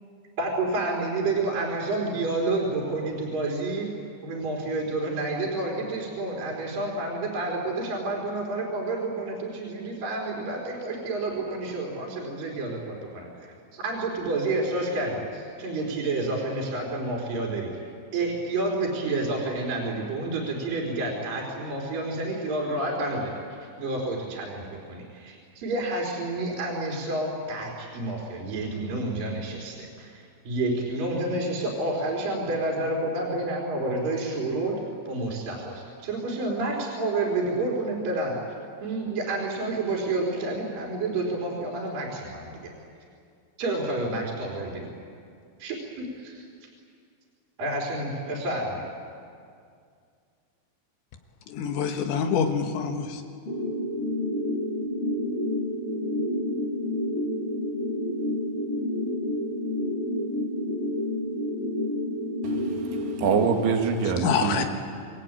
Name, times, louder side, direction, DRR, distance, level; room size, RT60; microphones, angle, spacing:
voice 1, 0.4-3.9 4.2-13.3 13.7-17.8 18.1-23.4 23.8-38.4 38.8-42.7 43.6-44.9 45.6-46.5 47.6-48.8, right 2 dB, 45° right, 5.1 m, -29 dB
voice 2, 51.5-53.2 64.2-64.6, left 6 dB, 70° left, 3.5 m, -26 dB
sound 1, 53.5-63.5, left 1 dB, 35° left, 5.8 m, -29 dB
voice 3, 62.4-64.7, right 5 dB, 70° right, 4.5 m, -25 dB
27.5 x 21.5 x 9.0 m
omnidirectional pair, 5.8 m